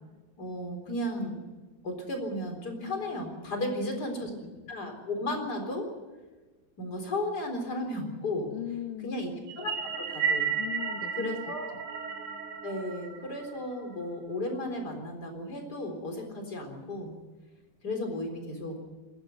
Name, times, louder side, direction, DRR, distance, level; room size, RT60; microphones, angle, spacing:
voice 1, 0.4-1.4 1.8-4.3 4.7-5.9 6.8-8.5 9.0-10.6 11.2-11.8 12.6-17.1 17.8-18.8, left 1 dB, 25° left, 4 dB, 4.0 m, -34 dB
voice 2, 3.5-3.9 4.2-4.5 8.5-9.2 10.6-11.4, left 12 dB, 75° left, 6 dB, 1.9 m, -39 dB
sound 1, 9.5-14.0, right 6 dB, 85° right, 5.5 m, -33 dB
21.0 x 16.0 x 9.3 m, 1.2 s
omnidirectional pair, 5.1 m